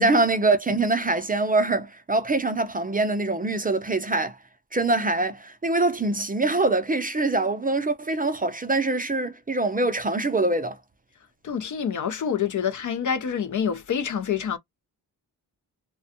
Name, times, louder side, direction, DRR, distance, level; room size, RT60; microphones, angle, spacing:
voice 1, 0.0-4.4 4.7-10.8, right 2 dB, 20° right, 0.5 m, -24 dB
voice 2, 11.4-14.6, left 7 dB, 50° left, 0.5 m, -27 dB
2.4 x 2.2 x 2.6 m
cardioid pair, 60°, 40 cm